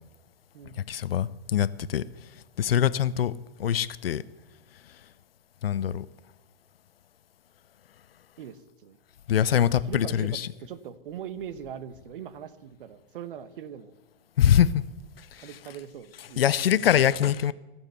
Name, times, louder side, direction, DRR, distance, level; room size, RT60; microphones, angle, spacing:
voice 1, 0.9-2.0 2.6-3.3 3.6-4.2 5.6-6.1 9.3-10.5 14.4-14.8 15.3-15.5 16.4-17.5, left 10 dB, 80° left, 0.7 m, -23 dB
voice 2, 8.4-9.0 9.7-13.9 15.4-16.4, right 9 dB, 65° right, 1.1 m, -41 dB
16.5 x 7.3 x 6.9 m
hypercardioid pair, 115°, 29 cm